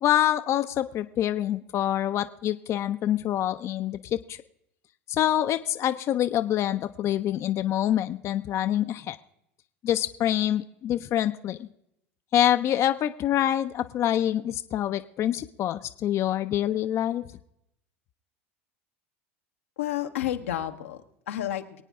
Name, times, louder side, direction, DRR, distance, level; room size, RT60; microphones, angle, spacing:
voice 1, 0.0-4.4 5.1-9.2 9.8-11.7 12.3-17.2, left 11 dB, 45° left, 9 dB, 0.6 m, -26 dB
voice 2, 19.8-21.8, left 12 dB, 85° left, 5 dB, 1.1 m, -31 dB
23.0 x 9.1 x 3.6 m, 0.78 s
hypercardioid pair, 90°, 7 cm